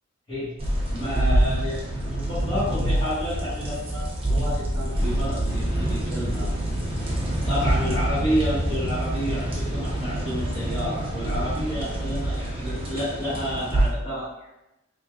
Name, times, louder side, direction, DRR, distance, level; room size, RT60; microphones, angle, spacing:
sound 1, 0.6-13.9, right 1 dB, 25° right, 0.8 m, -26 dB
voice 1, 0.9-1.8 2.1-6.5 7.4-14.3, equal, 25° left, -13 dB, 1.4 m, -30 dB
3.9 x 3.3 x 2.4 m, 0.91 s
head